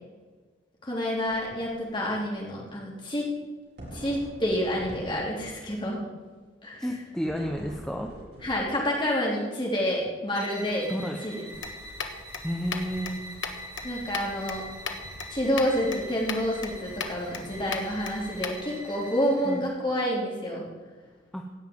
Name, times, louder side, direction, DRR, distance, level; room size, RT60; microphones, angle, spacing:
voice 1, 0.8-3.3 3.9-6.0 6.6-6.9 8.4-10.9 11.2-11.4 13.8-14.6 15.3-20.6, equal, 25° left, -3 dB, 3.5 m, -28 dB
sound 1, 1.2-1.5 1.8-1.9 3.8-5.7 7.2-9.0, right 1 dB, 60° right, 4.6 m, -44 dB
voice 2, 6.8-8.1 10.9-11.2 12.4-13.2 19.4-19.6 21.3-21.4, equal, 5° left, 2 dB, 0.8 m, -31 dB
sound 2, 10.3-19.6, equal, 20° right, 3.2 m, -43 dB
sound 3, 11.5-18.6, left 5 dB, 85° left, 1.4 m, -38 dB
17.0 x 5.7 x 9.0 m, 1.4 s
head